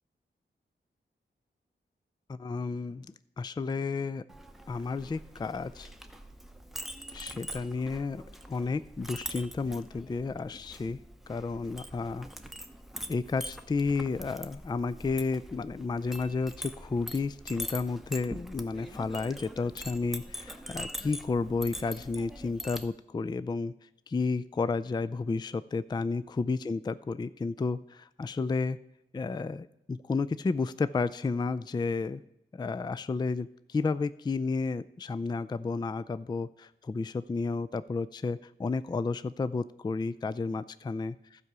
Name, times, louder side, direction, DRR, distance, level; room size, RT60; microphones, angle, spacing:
voice 1, 2.3-3.1 3.4-4.2 4.7-5.9 7.1-11.0 11.3-12.3 13.1-23.7 24.1-28.8 29.1-32.2 32.5-41.1, left 4 dB, 20° left, 14 dB, 0.3 m, -32 dB
Chink clink, 4.3-22.9, equal, ahead, 0.8 m, -43 dB
12.5 x 4.8 x 6.7 m, 0.84 s
cardioid pair, 55°, 20 cm